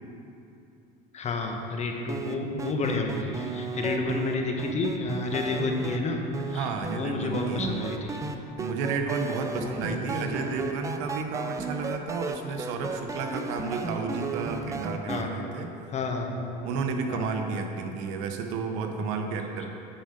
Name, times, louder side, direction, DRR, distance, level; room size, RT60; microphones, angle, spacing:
voice 1, 1.1-6.2 6.5-6.7 6.9-8.2 9.5-10.0 15.1-15.4 15.9-16.6 17.1-17.4, left 3 dB, 35° left, 3 dB, 1.0 m, -30 dB
sound 1, 2.1-6.0 6.3-7.0 7.3-15.2, right 4 dB, 15° right, 0.5 m, -34 dB
voice 2, 6.5-7.7 8.6-15.7 16.6-19.7, right 4 dB, 80° right, 5 dB, 0.9 m, -32 dB
9.0 x 5.3 x 5.1 m, 2.8 s
supercardioid pair, 110°, 19 cm